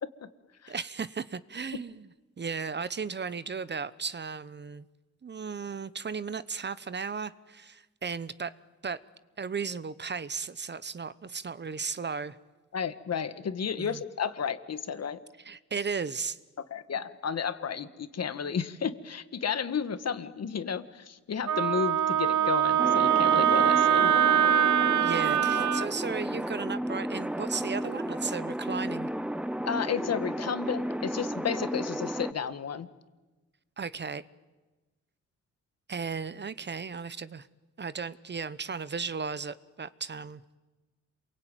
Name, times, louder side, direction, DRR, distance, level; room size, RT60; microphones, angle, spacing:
voice 1, 0.7-2.1 2.4-4.9 5.2-8.5 8.8-9.0 9.4-12.4 13.8-14.0 15.4-16.4 25.0-29.1 33.8-34.2 35.9-37.5 37.8-40.4, right 5 dB, 35° right, 16 dB, 0.9 m, -35 dB
voice 2, 12.7-15.2 16.7-24.1 29.6-32.9, left 7 dB, 55° left, 12 dB, 1.6 m, -32 dB
Wind instrument woodwind instrument, 21.5-25.9, right 10 dB, 70° right, 0.9 m, -23 dB
sound 1, 22.8-32.3, equal, 5° right, 0.8 m, -33 dB
27.5 x 23.0 x 9.2 m, 1.2 s
cardioid pair, 90°, 30 cm